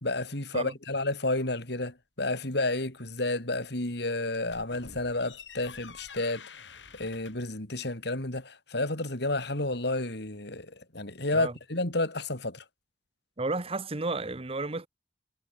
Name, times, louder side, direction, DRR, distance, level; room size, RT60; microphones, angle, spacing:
voice 1, 0.0-6.4 6.9-12.6, left 2 dB, 65° left, 4.4 m, -31 dB
sound 1, 4.3-7.5, left 5 dB, 80° left, 5.4 m, -48 dB
voice 2, 13.4-14.9, right 3 dB, 35° right, 1.3 m, -32 dB
head